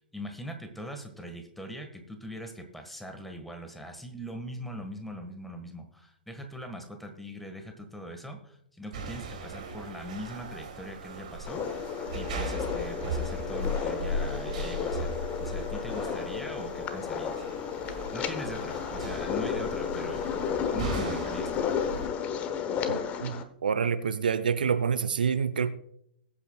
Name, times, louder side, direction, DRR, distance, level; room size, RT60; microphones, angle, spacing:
voice 1, 0.0-15.1 15.4-17.4 18.1-20.2 20.7-21.7, equal, 5° left, 1.7 m, -41 dB
sound 1, 8.9-22.1, right 1 dB, 50° right, 2.6 m, -37 dB
sound 2, 11.5-23.4, left 7 dB, 25° left, 1.1 m, -33 dB
voice 2, 22.9-23.3 23.6-25.7, right 6 dB, 65° right, 0.7 m, -27 dB
21.0 x 8.6 x 2.4 m
figure-of-eight pair, 105°, 5 cm